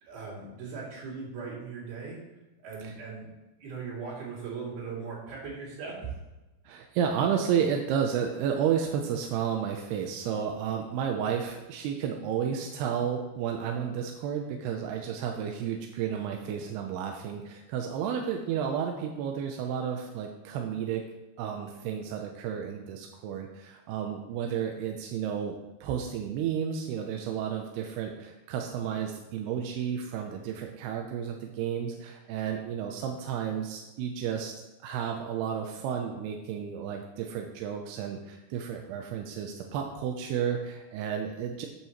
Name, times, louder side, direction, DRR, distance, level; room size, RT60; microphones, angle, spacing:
voice 1, 0.0-2.2 2.6-6.1, right 5 dB, 70° right, -5 dB, 4.7 m, -39 dB
voice 2, 6.7-21.0 21.4-34.5 34.8-41.7, right 8 dB, 90° right, 3 dB, 2.7 m, -32 dB
12.5 x 8.5 x 3.1 m, 1.1 s
omnidirectional pair, 4.7 m